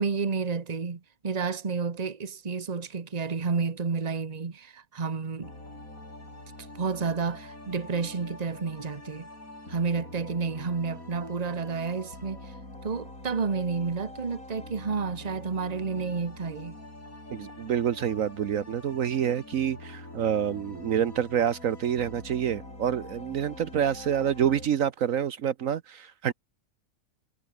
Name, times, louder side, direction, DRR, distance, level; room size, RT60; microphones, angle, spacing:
voice 1, 0.0-5.5 6.7-9.3 9.7-12.5 12.8-16.8, right 5 dB, 30° right, 1.3 m, -30 dB
sound 1, 5.4-24.7, left 1 dB, 70° left, 8.7 m, -45 dB
voice 2, 17.3-26.3, right 9 dB, 65° right, 1.3 m, -27 dB
omnidirectional pair, 1.5 m